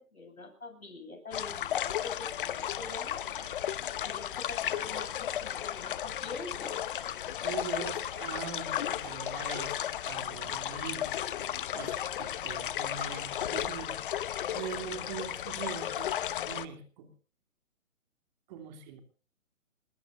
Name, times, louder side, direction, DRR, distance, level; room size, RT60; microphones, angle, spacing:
voice 1, 0.0-3.5 4.0-6.8, left 3 dB, 90° left, 4 dB, 7.7 m, -45 dB
sound 1, 1.3-16.7, left 11 dB, 40° left, 0.9 m, -34 dB
voice 2, 7.4-11.1 11.4-14.0 14.5-16.1 16.4-17.1 18.5-19.0, right 7 dB, 30° right, 6 dB, 3.0 m, -42 dB
23.5 x 20.5 x 2.6 m, 0.37 s
hypercardioid pair, 140°, 41 cm